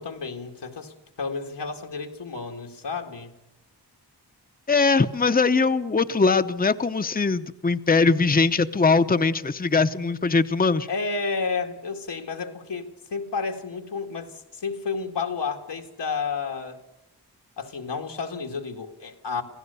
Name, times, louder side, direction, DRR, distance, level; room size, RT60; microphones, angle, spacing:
voice 1, 0.0-3.4 10.9-16.8 17.6-19.4, left 4 dB, 85° left, 3 dB, 2.2 m, -31 dB
voice 2, 4.7-10.9, left 4 dB, 20° left, 10 dB, 0.8 m, -21 dB
27.5 x 16.5 x 7.0 m, 1.0 s
wide cardioid pair, 75°, 40 cm